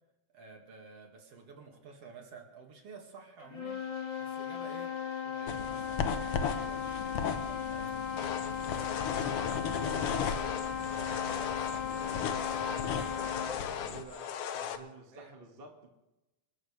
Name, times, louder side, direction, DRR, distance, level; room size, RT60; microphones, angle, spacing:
voice 1, 0.3-4.9 5.2-8.0 8.4-9.0 9.4-10.4 10.9-12.0 12.4-13.3 15.1-15.3, right 4 dB, 55° right, 1 dB, 3.1 m, -52 dB
sound 1, 3.4-13.7, left 8 dB, 40° left, 2.1 m, -36 dB
sound 2, 5.5-14.0, left 6 dB, 65° left, 1.6 m, -37 dB
sound 3, 8.2-14.8, left 8 dB, 90° left, 2.4 m, -38 dB
voice 2, 13.8-15.9, right 4 dB, 25° right, 2 dB, 1.4 m, -52 dB
28.0 x 13.5 x 3.4 m, 0.97 s
omnidirectional pair, 3.4 m